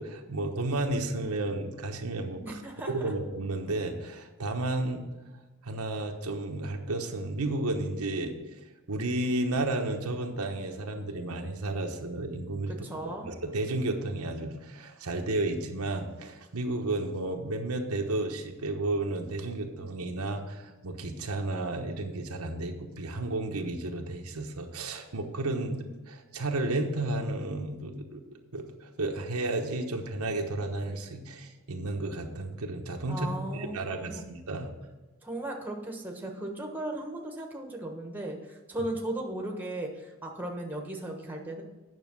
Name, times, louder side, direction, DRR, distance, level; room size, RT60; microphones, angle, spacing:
voice 1, 0.0-2.6 2.9-5.0 5.6-8.4 8.9-12.9 13.3-28.2 28.5-34.7, right 2 dB, 85° right, 3 dB, 1.1 m, -32 dB
voice 2, 2.4-3.1 12.8-13.3 33.1-34.2 35.2-41.6, right 1 dB, 10° right, 1 dB, 1.2 m, -36 dB
9.3 x 6.2 x 6.1 m, 1.2 s
head